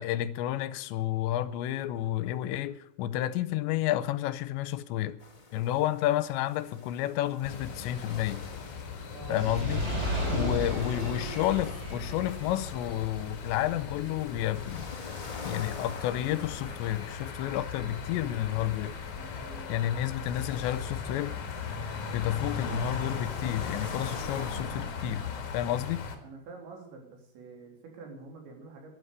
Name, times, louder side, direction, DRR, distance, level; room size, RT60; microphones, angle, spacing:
voice 1, 0.0-5.2 5.5-8.4 9.3-9.8 10.3-14.9 15.4-19.0 19.7-21.4 22.1-25.3 25.5-26.0, left 13 dB, 85° left, 3.0 m, -31 dB
sound 1, 5.2-24.6, left 3 dB, 30° left, 0.8 m, -47 dB
sound 2, 7.4-26.2, left 5 dB, 50° left, 2.9 m, -38 dB
voice 2, 9.1-9.5 10.0-11.2 19.2-20.1 26.2-28.9, right 3 dB, 80° right, 5.8 m, -46 dB
Fire, 9.2-15.6 16.3-16.4, left 1 dB, 15° right, 4.6 m, -35 dB
12.5 x 11.5 x 8.3 m
omnidirectional pair, 5.1 m